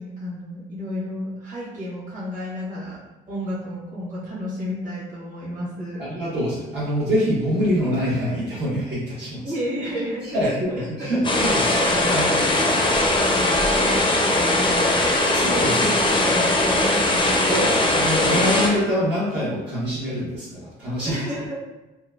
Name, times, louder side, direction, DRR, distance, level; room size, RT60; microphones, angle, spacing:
voice 1, 0.0-3.0 3.3-6.1 9.4-17.7 18.0-18.2 21.0-21.5, equal, 45° right, -8 dB, 1.2 m, -32 dB
voice 2, 6.0-9.4 10.2-10.5 11.0-11.6 12.0-12.4 15.3-15.9 17.5-21.2, equal, 65° right, -10 dB, 1.2 m, -25 dB
sound 1, 11.2-18.7, left 2 dB, 25° left, 0.5 m, -20 dB
2.9 x 2.2 x 2.3 m, 1.0 s
supercardioid pair, 70°, 20 cm